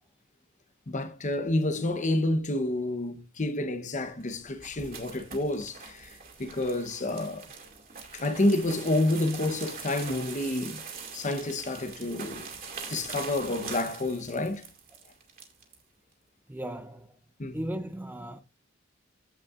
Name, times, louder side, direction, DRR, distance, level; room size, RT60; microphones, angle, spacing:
voice 1, 0.9-7.5 8.1-10.8 11.1-12.5 12.9-14.7 17.4-17.7, left 1 dB, 35° left, 0.9 m, -29 dB
sound 1, 4.1-15.8, right 5 dB, 45° right, 2.3 m, -43 dB
voice 2, 16.5-17.1 17.5-18.4, right 1 dB, 10° right, 0.5 m, -36 dB
15.0 x 5.4 x 2.5 m
head